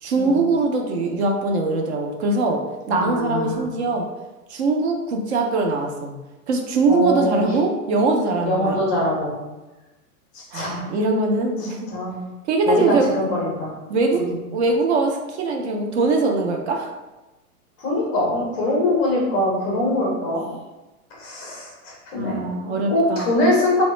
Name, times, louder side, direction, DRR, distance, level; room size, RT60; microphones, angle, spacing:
voice 1, 0.0-2.6 2.9-4.0 4.5-6.1 6.5-8.8 10.5-11.8 12.5-13.2 13.9-16.9 22.1-23.3, right 3 dB, 50° right, 2 dB, 0.5 m, -22 dB
voice 2, 2.9-3.6 6.9-7.6 8.4-9.3 10.3-10.8 11.6-12.2 12.7-13.7 14.1-14.3 17.8-20.5 21.1-22.5 22.9-23.8, left 1 dB, 15° left, -3 dB, 0.4 m, -23 dB
3.5 x 2.1 x 3.0 m, 1.1 s
hypercardioid pair, 150°, 46 cm